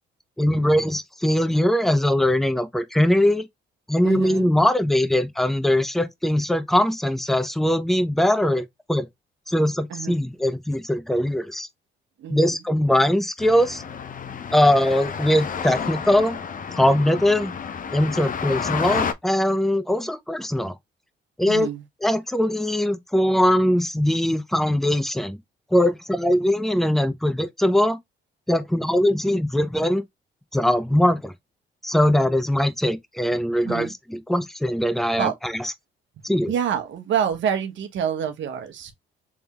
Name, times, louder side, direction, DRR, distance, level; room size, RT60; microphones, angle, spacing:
voice 1, 0.4-3.5 3.9-9.1 9.5-11.7 12.3-13.8 14.5-16.4 16.7-17.5 17.9-20.7 21.4-21.7 22.0-25.4 25.7-28.0 28.5-30.0 30.5-31.3 31.8-35.7 36.2-36.5, left 1 dB, ahead, 0.7 m, -21 dB
voice 2, 4.0-4.5 9.9-10.2 12.2-12.6 21.5-21.8 33.6-33.9 35.2-35.4 36.5-38.9, right 8 dB, 70° right, 1.1 m, -27 dB
sound 1, 13.4-19.1, left 6 dB, 45° left, 0.7 m, -30 dB
3.5 x 3.4 x 2.9 m
cardioid pair, 90°, 20 cm